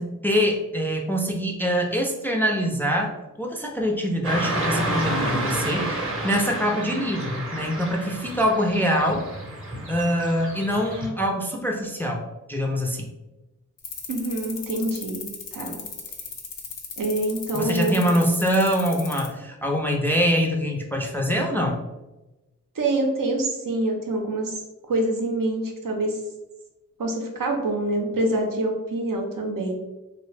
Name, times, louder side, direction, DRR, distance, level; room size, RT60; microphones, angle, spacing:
voice 1, 0.0-3.1 3.4-9.2 9.9-13.1 17.5-21.8, equal, 5° left, 0 dB, 0.4 m, -24 dB
Car passing by / Traffic noise roadway noise, 4.2-11.1, right 1 dB, 40° right, 0.7 m, -30 dB
sound 1, 13.8-19.3, left 6 dB, 80° left, 0.5 m, -36 dB
voice 2, 14.1-15.2 15.5-15.8 17.0-18.2 22.8-26.2 27.0-29.7, right 2 dB, 75° right, 2 dB, 0.6 m, -26 dB
2.7 x 2.0 x 3.2 m, 1.0 s
wide cardioid pair, 60°, 33 cm